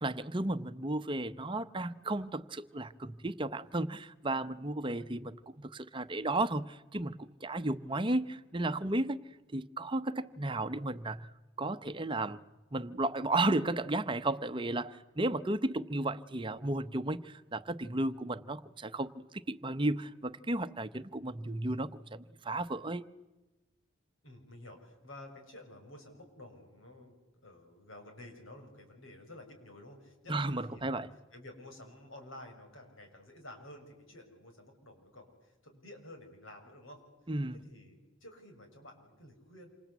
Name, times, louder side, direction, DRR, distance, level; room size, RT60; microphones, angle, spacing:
voice 1, 0.0-9.2 9.5-11.3 11.6-12.4 12.7-23.0 30.3-31.1 37.3-37.6, right 2 dB, 25° right, 0.9 m, -34 dB
voice 2, 24.2-31.0 31.3-37.0 37.5-39.7, left 1 dB, 85° left, 6.6 m, -52 dB
27.5 x 26.0 x 8.2 m
head